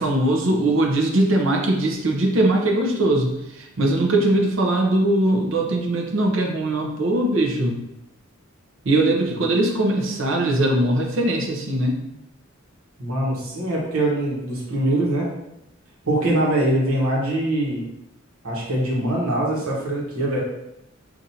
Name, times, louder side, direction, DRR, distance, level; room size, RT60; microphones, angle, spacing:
voice 1, 0.0-7.8 8.9-12.0, right 1 dB, 65° right, 1 dB, 0.7 m, -21 dB
voice 2, 13.0-15.3 16.0-17.8 18.4-20.4, right 1 dB, 90° right, -3 dB, 1.2 m, -23 dB
5.8 x 2.6 x 2.7 m, 0.86 s
head